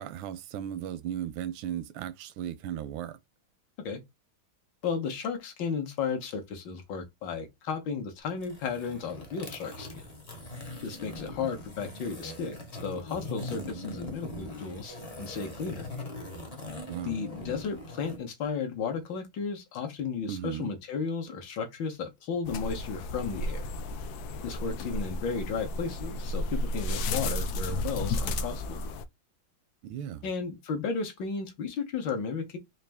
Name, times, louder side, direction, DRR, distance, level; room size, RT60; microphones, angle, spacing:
voice 1, 0.0-3.2 16.9-17.2 20.3-20.7 29.8-30.3, right 10 dB, 85° right, 1.4 m, -36 dB
voice 2, 4.8-10.0 10.8-12.6 12.8-15.9 17.0-23.7 24.4-28.8 30.2-32.6, left 5 dB, 65° left, 1.5 m, -34 dB
sound 1, 8.3-18.2, left 1 dB, 40° left, 0.5 m, -41 dB
sound 2, 22.4-29.0, left 2 dB, 85° left, 0.8 m, -33 dB
4.1 x 2.6 x 3.3 m
omnidirectional pair, 2.2 m